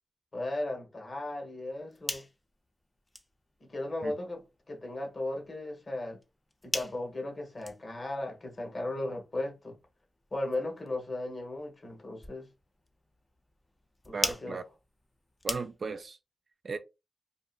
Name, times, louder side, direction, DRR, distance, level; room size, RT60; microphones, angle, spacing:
voice 1, 0.3-2.2 3.7-6.2 6.6-9.8 10.3-12.5 14.0-14.6, left 2 dB, 40° left, 1.0 m, -36 dB
sound 1, 1.7-16.1, left 1 dB, 15° left, 0.4 m, -43 dB
voice 2, 14.1-14.6 15.4-16.2 16.6-16.8, right 4 dB, 50° right, 0.3 m, -36 dB
2.7 x 2.4 x 2.4 m
cardioid pair, 85°, 0 cm